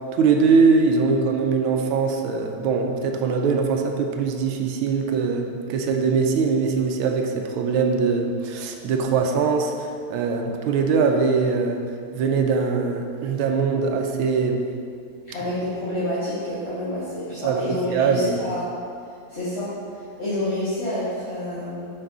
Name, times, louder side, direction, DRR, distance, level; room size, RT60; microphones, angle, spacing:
voice 1, 0.1-11.8 12.1-14.7 17.4-18.4, right 5 dB, 85° right, 3 dB, 1.5 m, -22 dB
voice 2, 15.3-18.7 19.3-21.9, left 1 dB, 30° left, -15 dB, 2.0 m, -28 dB
7.1 x 5.5 x 3.7 m, 2.3 s
omnidirectional pair, 2.3 m